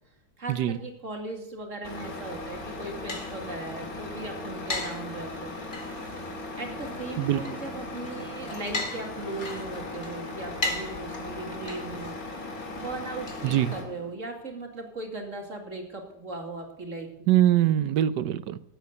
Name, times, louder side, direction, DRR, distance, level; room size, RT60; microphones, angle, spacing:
voice 1, 0.4-5.6 6.6-12.2 12.8-17.1, right 2 dB, 45° right, 2.7 m, -38 dB
Truck, 1.8-13.8, left 2 dB, 55° left, 2.8 m, -38 dB
sound 1, 2.5-14.1, left 2 dB, 30° left, 2.0 m, -39 dB
voice 2, 17.3-18.6, right 12 dB, 80° right, 1.3 m, -23 dB
13.0 x 8.7 x 8.0 m
omnidirectional pair, 1.9 m